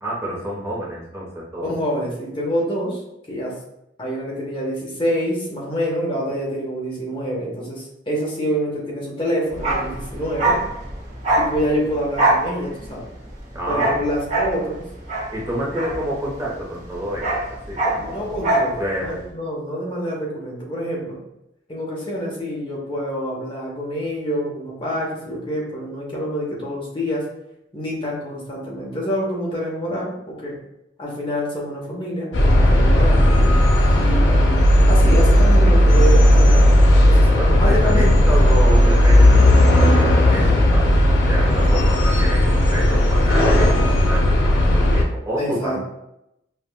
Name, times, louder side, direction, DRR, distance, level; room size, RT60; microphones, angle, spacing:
voice 1, 0.0-1.7 13.5-14.0 15.3-17.4 17.7-18.4 18.7-19.2 37.3-40.9 41.3-45.8, equal, 15° right, -6 dB, 0.9 m, -28 dB
voice 2, 1.6-3.0 3.3-3.6 4.0-10.6 11.4-13.1 13.7-14.8 15.5-15.6 18.0-21.2 21.7-27.2 27.7-30.6 31.0-33.4 34.0-34.6 34.9-36.7 37.1-37.3 37.6-38.3 45.4-45.8, equal, 30° left, -4 dB, 0.9 m, -26 dB
Bark, 9.5-16.6 16.8-18.8 19.0-19.2, right 2 dB, 45° right, 0.9 m, -23 dB
sound 1, 32.3-45.0, left 1 dB, 85° left, 0.7 m, -14 dB
5.2 x 2.4 x 2.2 m, 0.84 s
head